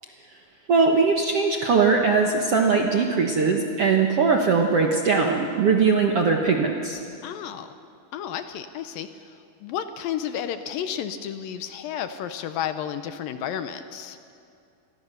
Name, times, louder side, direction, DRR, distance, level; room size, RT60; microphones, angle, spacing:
voice 1, 0.7-7.0, right 4 dB, 60° right, 2 dB, 1.6 m, -20 dB
voice 2, 7.2-7.8 8.1-14.2, left 9 dB, 75° left, 9 dB, 2.3 m, -32 dB
28.5 x 21.5 x 6.8 m, 2.4 s
omnidirectional pair, 4.5 m